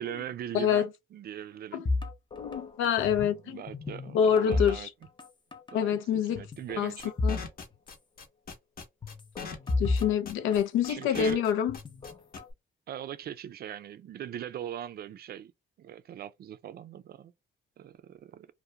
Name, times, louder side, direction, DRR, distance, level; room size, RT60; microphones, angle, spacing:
voice 1, 0.0-1.8 3.4-4.9 5.7-6.0 6.3-7.1 10.9-11.4 12.9-15.5 15.8-17.3 17.8-18.5, right 10 dB, 50° right, 0.4 m, -40 dB
voice 2, 0.5-0.9 1.7-1.9 2.3-3.6 4.1-4.9 5.7-6.4 6.8-6.9 7.2-7.4 9.8-11.8, left 8 dB, 90° left, 0.4 m, -26 dB
sound 1, 1.9-3.4 3.7-5.3 5.5-5.8 6.4-7.5 7.7-7.8 9.0-11.1 11.7-12.5, left 3 dB, 25° left, 0.5 m, -32 dB
sound 2, 7.0-12.4, left 5 dB, 50° left, 0.8 m, -41 dB
2.4 x 2.1 x 2.7 m
cardioid pair, 90°, 20 cm